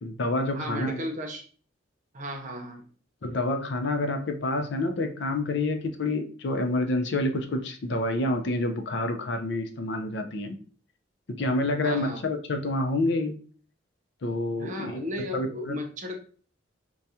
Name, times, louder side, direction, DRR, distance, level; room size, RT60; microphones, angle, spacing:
voice 1, 0.0-1.1 3.2-10.6 11.4-13.4 14.2-15.0 15.3-15.8, left 2 dB, 65° left, 6 dB, 0.5 m, -28 dB
voice 2, 0.5-1.4 2.1-2.8 11.8-12.2 14.6-16.1, left 1 dB, 40° right, 3 dB, 0.7 m, -35 dB
4.7 x 2.2 x 2.7 m, 0.42 s
head